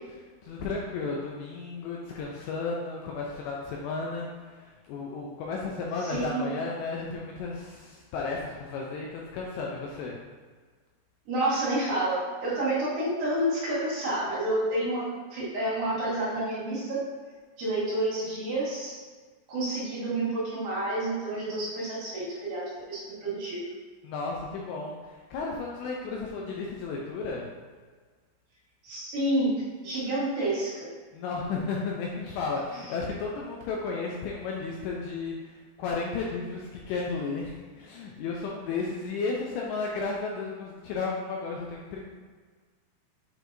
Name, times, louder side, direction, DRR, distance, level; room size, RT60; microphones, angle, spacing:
voice 1, 0.4-10.2 24.0-27.5 31.1-42.1, left 4 dB, 80° left, -2 dB, 2.6 m, -33 dB
voice 2, 6.1-6.5 11.3-17.0 17.6-19.0 19.5-23.6 28.8-29.5 29.8-30.9, right 1 dB, 60° right, -8 dB, 2.9 m, -29 dB
7.8 x 4.6 x 2.6 m, 1.5 s
omnidirectional pair, 5.5 m